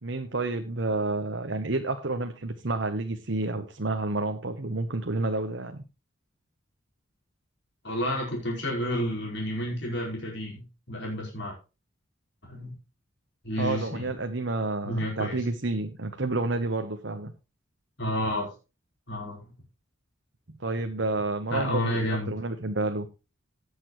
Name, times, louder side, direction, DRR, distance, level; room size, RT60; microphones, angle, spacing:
voice 1, 0.0-5.8 13.6-17.3 20.6-23.1, right 2 dB, 60° right, 6 dB, 1.1 m, -30 dB
voice 2, 7.8-11.5 12.4-12.7 13.4-14.1 14.8-15.4 18.0-18.5 19.1-19.5 21.5-22.3, equal, 55° left, -2 dB, 4.9 m, -30 dB
18.0 x 7.0 x 3.1 m, 0.30 s
head